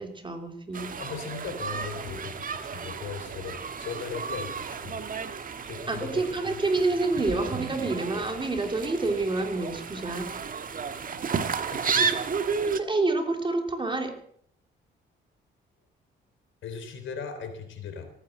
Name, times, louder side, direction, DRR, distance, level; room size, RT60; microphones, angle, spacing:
voice 1, 0.0-0.9 5.9-10.3 12.2-12.3 12.8-14.1, right 2 dB, 25° right, 5 dB, 3.0 m, -28 dB
sound 1, 0.7-12.8, right 5 dB, 45° right, 1.5 m, -32 dB
voice 2, 1.0-5.0 5.6-6.6 11.7-12.1 16.6-18.1, left 6 dB, 75° left, 7 dB, 3.7 m, -38 dB
17.0 x 9.8 x 7.6 m, 0.65 s
cardioid pair, 90°, 20 cm